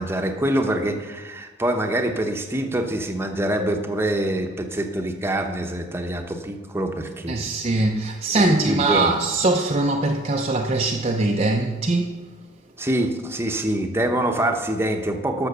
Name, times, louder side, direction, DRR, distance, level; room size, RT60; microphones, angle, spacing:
voice 1, 0.0-7.5 8.4-9.1 12.8-15.5, right 1 dB, 10° right, 0.9 m, -25 dB
voice 2, 7.3-12.2, right 2 dB, 30° right, 0.6 m, -22 dB
13.0 x 6.2 x 6.8 m
head